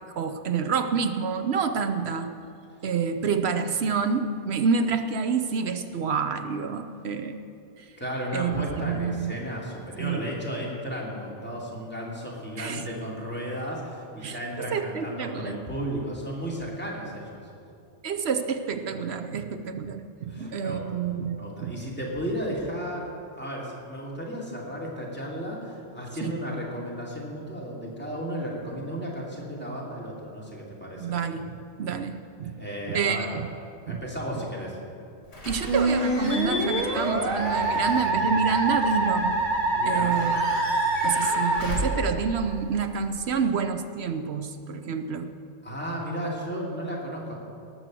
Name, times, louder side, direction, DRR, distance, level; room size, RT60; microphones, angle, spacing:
voice 1, 0.2-2.3 2.8-7.4 8.3-9.3 10.0-10.3 12.6-12.9 14.2-15.6 18.0-21.8 26.2-26.3 30.9-32.6 32.9-33.5 33.9-34.0 35.5-39.5 39.9-40.5 41.0-45.3, right 6 dB, 65° right, 9 dB, 0.9 m, -28 dB
voice 2, 8.0-17.5 20.3-20.8 21.3-31.2 32.6-33.3 33.8-34.8 39.7-40.2 45.6-47.3, equal, 10° left, -5 dB, 2.7 m, -34 dB
Slam / Squeak / Alarm, 35.3-43.3, left 1 dB, 65° left, 3.1 m, -36 dB
Musical instrument, 35.7-42.5, right 2 dB, 80° right, 1.8 m, -25 dB
18.5 x 6.4 x 7.6 m, 2.5 s
omnidirectional pair, 1.2 m